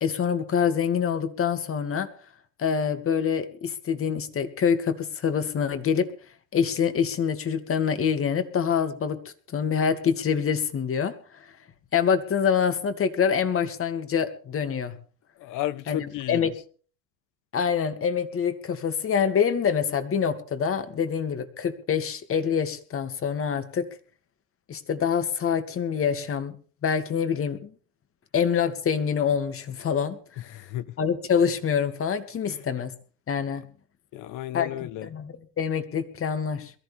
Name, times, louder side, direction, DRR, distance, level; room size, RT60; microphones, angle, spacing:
voice 1, 0.0-2.1 2.6-6.1 6.5-9.2 9.5-11.4 11.9-15.0 15.9-16.0 16.3-16.5 17.5-23.9 24.7-26.6 26.8-27.7 28.3-30.4 31.0-32.9 33.3-33.7 34.5-36.7, left 7 dB, 35° left, 2.5 m, -26 dB
voice 2, 15.4-16.5 30.5-30.9 32.5-32.7 33.5-33.6 34.1-35.1, left 14 dB, 50° left, 1.1 m, -34 dB
22.5 x 14.5 x 3.6 m
supercardioid pair, 95°, 39 cm